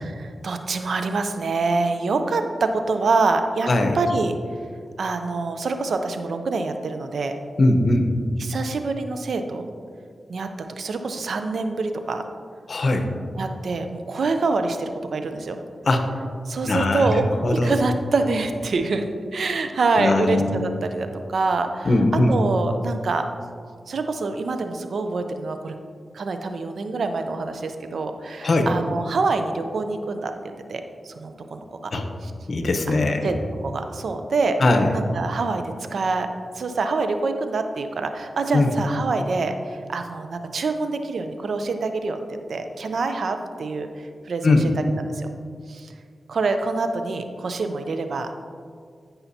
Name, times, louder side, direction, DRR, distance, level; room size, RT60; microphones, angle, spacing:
voice 1, 0.0-3.7 3.9-4.3 5.0-7.4 8.4-9.7 10.3-10.5 10.8-12.2 13.4-15.6 16.5-17.3 17.6-19.1 19.3-22.0 22.3-23.3 23.9-25.7 26.1-30.3 30.7-31.9 32.2-32.3 32.9-33.3 33.6-34.6 34.9-36.3 36.5-42.2 42.5-44.6 45.1-45.3 45.7-45.9 46.3-48.3, right 3 dB, 75° right, 7 dB, 0.6 m, -26 dB
voice 2, 3.6-4.0 7.6-8.1 12.7-13.1 15.9-16.1 16.6-17.7 20.0-20.4 21.8-22.4 28.4-28.7 31.9-32.1 32.5-33.3 34.6-34.9 38.5-38.7 44.4-44.6, left 2 dB, 65° left, 5 dB, 0.9 m, -20 dB
13.0 x 5.6 x 2.8 m, 2.1 s
cardioid pair, 45°, 0 cm